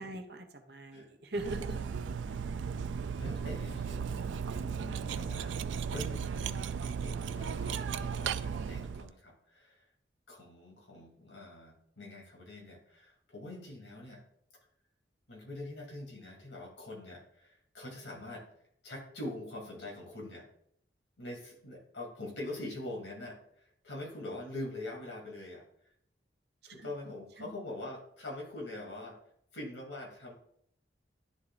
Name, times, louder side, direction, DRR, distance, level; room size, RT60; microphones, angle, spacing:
voice 1, 0.0-1.9 26.6-26.9 27.4-27.5, right 2 dB, 60° right, 5 dB, 1.0 m, -41 dB
Cutlery silverware, 1.4-9.1, right 6 dB, 90° right, 0.4 m, -36 dB
voice 2, 2.0-2.4 3.2-5.6 5.9-9.9 10.3-14.2 15.3-18.4 18.8-20.5 21.2-25.6 26.6-29.2 29.5-30.3, left 1 dB, 85° left, -2 dB, 3.0 m, -44 dB
11.0 x 3.7 x 4.0 m, 0.71 s
head